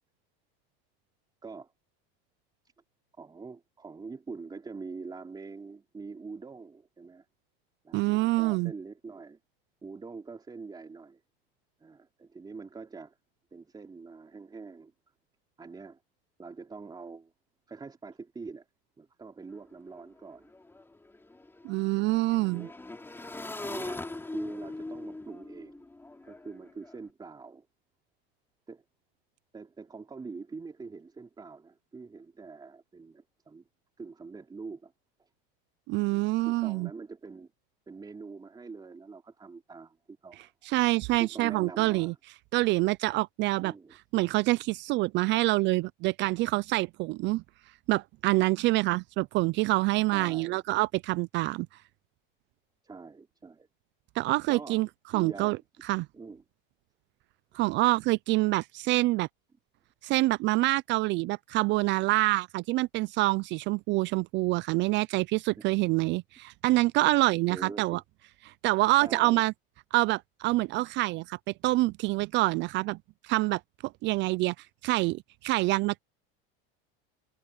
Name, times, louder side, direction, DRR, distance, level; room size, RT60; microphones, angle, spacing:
voice 1, 3.2-7.2 7.8-9.4 9.8-11.2 11.8-13.1 13.5-14.9 15.6-16.0 16.4-17.3 17.7-18.7 19.0-20.5 21.7-21.9 22.4-22.7 23.6-25.8 26.2-27.7 28.7-28.8 29.5-33.7 34.0-34.9 35.2-35.3 36.0-37.5 37.9-40.5 41.2-42.2 43.6-44.0 50.1-50.6 52.8-53.7 54.5-54.8 55.1-55.6 56.1-56.4 65.6-65.7 67.5-68.0 69.0-69.4, right 4 dB, 15° right, 3.3 m, -44 dB
voice 2, 7.9-8.7 21.6-22.7 35.9-36.9 40.6-42.1 42.5-43.7 44.1-47.4 47.9-51.7 54.2-54.9 55.1-55.6 55.8-56.1 57.5-59.3 60.0-68.0 68.5-69.5 69.9-71.4 71.6-73.0 73.2-74.5 74.8-76.0, right 20 dB, 40° right, 0.4 m, -26 dB
Motorcycle / Engine, 19.5-19.6 19.9-27.0, left 2 dB, 10° left, 3.5 m, -42 dB
supercardioid pair, 135°, 29 cm